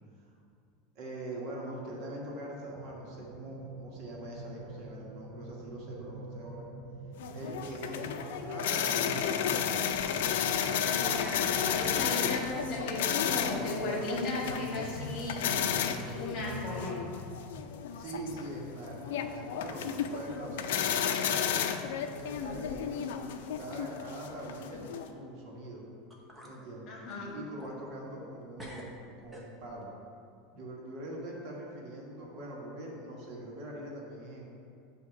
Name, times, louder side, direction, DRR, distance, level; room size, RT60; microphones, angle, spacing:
voice 1, 0.9-6.7 7.3-10.8 17.9-21.5 22.1-25.8 26.4-26.9 27.3-29.9 30.5-34.5, right 1 dB, 50° right, -2 dB, 1.4 m, -43 dB
sound 1, 2.7-17.1, right 4 dB, 75° right, 0.5 m, -46 dB
sound 2, 7.2-25.1, left 8 dB, 85° left, 0.4 m, -33 dB
voice 2, 10.8-15.7 16.0-17.0 26.9-27.4, left 2 dB, 45° left, -3 dB, 1.6 m, -36 dB
sound 3, 18.1-18.8 19.1-19.6 20.0-20.1 21.0-21.1 21.8-21.9 22.3-22.7 23.0-23.1 25.7-25.8 26.1-26.6 27.1-28.3 28.6-29.9, equal, 5° right, 0.9 m, -51 dB
8.2 x 2.8 x 5.8 m, 2.5 s
supercardioid pair, 145°, 0 cm